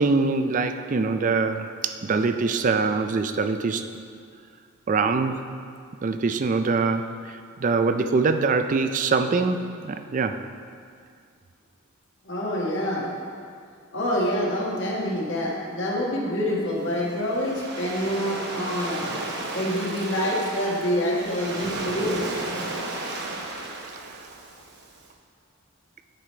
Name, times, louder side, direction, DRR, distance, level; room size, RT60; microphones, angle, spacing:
voice 1, 0.0-3.9 4.9-5.5 6.0-10.4, right 4 dB, 40° right, 8 dB, 0.4 m, -24 dB
voice 2, 12.2-13.1 13.9-19.1 19.5-22.2 22.6-22.7, equal, 60° left, -4 dB, 1.5 m, -26 dB
Waves surf, 16.8-25.0, right 2 dB, 55° right, 1.0 m, -34 dB
10.5 x 4.9 x 4.4 m, 2.2 s
head